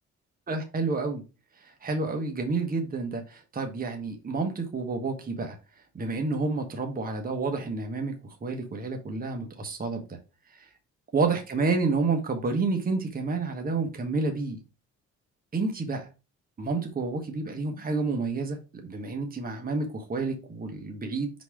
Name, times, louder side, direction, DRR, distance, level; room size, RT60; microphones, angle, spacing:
voice 1, 0.5-1.2 1.6-5.6 5.9-8.1 8.4-10.2 10.6-10.7 11.1-14.6 15.5-16.1 16.6-21.3, right 3 dB, 30° right, 4 dB, 1.2 m, -29 dB
4.9 x 4.1 x 4.8 m, 0.30 s
cardioid pair, 90°, 30 cm